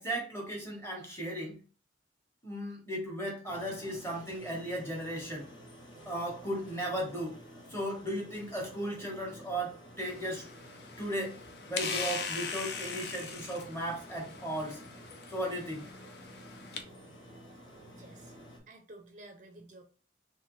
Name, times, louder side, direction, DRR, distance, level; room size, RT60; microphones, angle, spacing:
voice 1, 0.0-1.6 2.4-5.5 6.0-7.4 7.7-10.5 11.0-11.4 11.7-14.8 15.3-15.9, right 1 dB, 15° left, -1 dB, 1.0 m, -36 dB
sound 1, 3.4-18.6, equal, 80° left, 1.9 m, -52 dB
sound 2, 10.0-16.8, left 5 dB, 55° left, 0.5 m, -41 dB
voice 2, 17.9-18.3 18.7-19.8, right 2 dB, 40° right, 4 dB, 0.5 m, -52 dB
3.2 x 3.0 x 3.0 m, 0.39 s
head